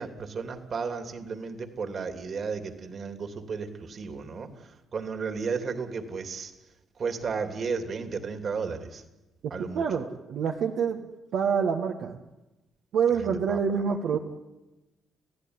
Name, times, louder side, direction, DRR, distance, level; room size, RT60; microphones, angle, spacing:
voice 1, 0.0-6.5 7.0-9.0 9.5-9.8 13.5-13.6, right 5 dB, 50° right, 7 dB, 3.0 m, -33 dB
voice 2, 9.6-11.0 11.3-12.2 12.9-14.2, right 6 dB, 75° right, 2 dB, 1.7 m, -26 dB
30.0 x 15.5 x 9.8 m, 1.0 s
cardioid pair, 90°, 0 cm